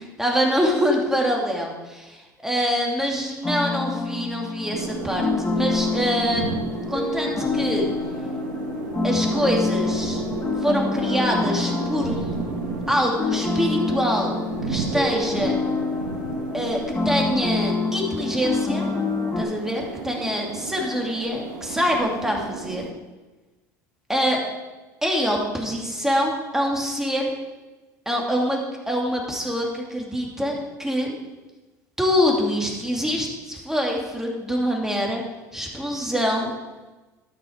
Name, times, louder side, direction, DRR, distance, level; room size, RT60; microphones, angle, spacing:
voice 1, 0.2-5.3 5.5-6.6 6.9-7.9 9.0-10.2 10.6-12.6 12.9-14.4 14.7-15.6 16.5-18.9 19.4-22.9 24.1-24.4 25.0-27.3 28.1-31.1 32.0-35.2 35.5-36.5, equal, 5° right, 0 dB, 2.6 m, -25 dB
sound 1, 3.4-19.4, left 4 dB, 20° left, 1.4 m, -27 dB
sound 2, 4.7-22.9, right 5 dB, 75° right, 1.6 m, -33 dB
13.0 x 6.0 x 5.1 m, 1.2 s
hypercardioid pair, 75°, 10 cm